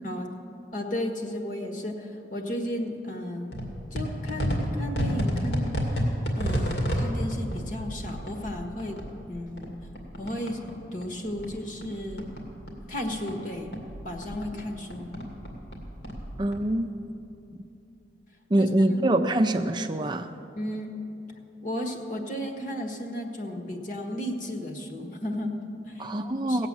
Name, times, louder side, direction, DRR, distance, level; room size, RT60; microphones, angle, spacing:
voice 1, 0.7-3.6 3.9-6.1 6.4-9.0 9.3-9.7 10.2-10.6 10.9-12.3 12.9-13.7 14.0-15.1 18.6-19.0 20.6-20.9 21.6-26.7, left 1 dB, 50° left, 4 dB, 1.5 m, -34 dB
sound 1, 3.5-10.8 11.0-13.4 13.6-16.6, equal, 70° left, 2.4 m, -31 dB
voice 2, 16.4-16.9 17.5-17.6 18.5-20.3 26.0-26.7, right 1 dB, 25° right, 6 dB, 0.4 m, -24 dB
17.5 x 8.0 x 7.6 m, 2.8 s
head